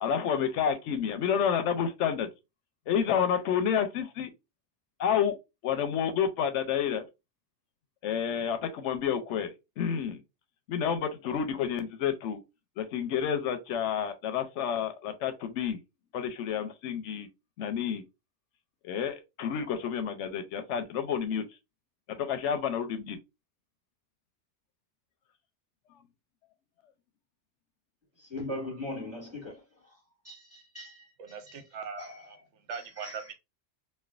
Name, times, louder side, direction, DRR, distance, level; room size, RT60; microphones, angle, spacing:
voice 1, 0.0-2.3 2.9-4.3 5.0-5.3 5.6-7.1 8.0-10.2 10.7-12.4 12.8-15.8 16.1-17.3 17.6-18.0 18.8-21.4 22.1-23.2, left 8 dB, 90° left, 0.9 m, -29 dB
voice 2, 28.2-29.6 29.9-30.0 30.2-31.6 32.0-32.3 32.7-33.3, left 1 dB, 10° right, 1.4 m, -40 dB
voice 3, 31.2-32.4 32.7-33.3, right 6 dB, 85° right, 1.0 m, -40 dB
3.2 x 2.2 x 2.3 m
omnidirectional pair, 1.2 m